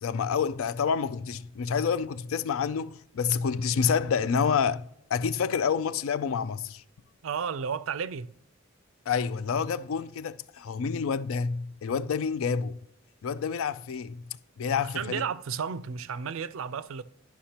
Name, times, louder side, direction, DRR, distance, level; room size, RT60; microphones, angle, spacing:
voice 1, 0.0-4.8 5.1-6.8 9.1-12.8 13.2-14.2 14.6-15.2, left 6 dB, 80° left, 0.4 m, -28 dB
voice 2, 7.2-8.3 14.7-17.0, right 6 dB, 70° right, 0.4 m, -33 dB
11.5 x 5.7 x 2.9 m
head